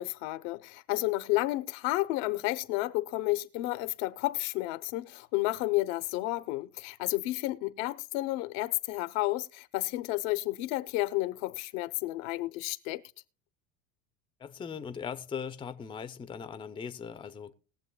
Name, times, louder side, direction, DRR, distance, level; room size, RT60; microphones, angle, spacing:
voice 1, 0.0-13.0, left 18 dB, 75° left, 0.8 m, -31 dB
voice 2, 14.4-17.5, left 6 dB, 15° left, 0.5 m, -39 dB
20.5 x 7.3 x 2.2 m
supercardioid pair, 130°, 37 cm